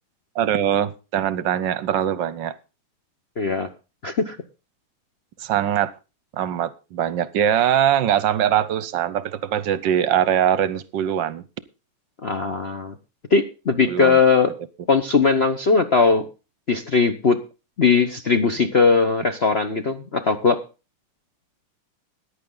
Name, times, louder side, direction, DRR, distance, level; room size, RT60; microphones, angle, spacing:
voice 1, 0.3-2.6 5.4-5.9 6.3-11.4 13.9-14.2, right 10 dB, 65° right, 1.3 m, -22 dB
voice 2, 3.4-3.7 4.0-4.4 12.2-12.9 13.3-14.5 14.9-16.2 16.7-17.4 17.8-20.6, left 4 dB, 45° left, 0.8 m, -19 dB
14.5 x 10.0 x 3.9 m
omnidirectional pair, 2.4 m